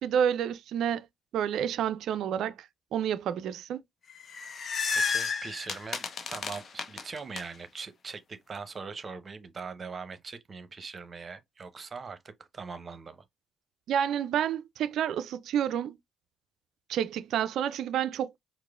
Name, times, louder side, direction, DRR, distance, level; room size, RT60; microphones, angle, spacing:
voice 1, 0.0-1.1 1.3-3.8 13.9-16.0 16.9-18.4, right 9 dB, 65° right, 0.3 m, -29 dB
sound 1, 4.1-7.4, left 5 dB, 50° left, 0.6 m, -32 dB
voice 2, 4.9-13.2, right 5 dB, 40° right, 0.7 m, -41 dB
4.6 x 2.0 x 2.3 m
hypercardioid pair, 50°, 0 cm